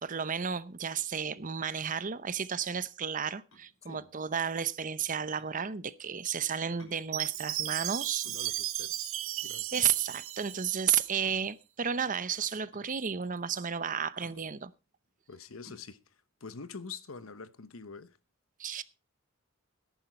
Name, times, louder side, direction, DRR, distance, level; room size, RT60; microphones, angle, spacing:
voice 1, 0.0-8.3 9.7-14.7 18.6-18.8, right 7 dB, 40° right, 0.7 m, -32 dB
sound 1, 3.5-17.7, left 1 dB, 70° left, 6.1 m, -61 dB
Chime, 7.1-11.3, right 14 dB, 80° right, 0.9 m, -36 dB
voice 2, 8.2-9.7 15.3-16.0 16.4-18.2, left 5 dB, 85° left, 1.0 m, -46 dB
13.5 x 11.0 x 4.4 m
head